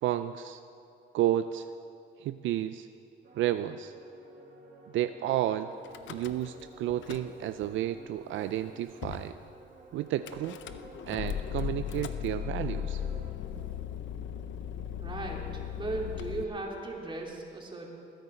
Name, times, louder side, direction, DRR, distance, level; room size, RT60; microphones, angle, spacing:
voice 1, 0.0-0.6 1.1-1.7 2.2-2.9 3.4-3.9 4.9-5.7 6.1-9.3 9.9-10.6 11.1-13.0, right 12 dB, 75° right, 11 dB, 0.4 m, -31 dB
sound 1, 3.2-13.3, right 2 dB, 55° right, 3.0 m, -51 dB
Car / Engine starting / Idling, 5.8-6.6 6.9-7.7 8.3-8.4 8.6-8.7 9.0-9.3 10.3-16.4, left 9 dB, 70° left, 0.6 m, -37 dB
voice 2, 15.0-17.9, right 2 dB, 25° right, -1 dB, 2.8 m, -37 dB
20.0 x 10.0 x 4.4 m, 2.7 s
cardioid pair, 90°, 20 cm